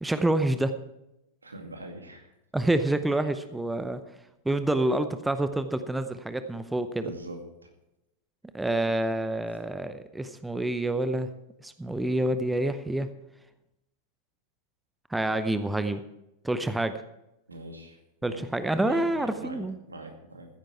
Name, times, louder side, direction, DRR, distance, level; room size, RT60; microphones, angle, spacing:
voice 1, 0.0-0.7 2.5-4.0 4.4-7.1 8.5-11.3 11.6-13.1 15.1-16.0 16.4-17.0 18.2-19.8, right 1 dB, 5° right, 11 dB, 0.7 m, -27 dB
voice 2, 1.4-2.3 7.0-7.4 17.5-18.4 18.8-19.6 19.9-20.5, right 2 dB, 80° right, 4 dB, 2.2 m, -42 dB
15.0 x 10.0 x 4.6 m, 0.90 s
figure-of-eight pair, 90°, 0 cm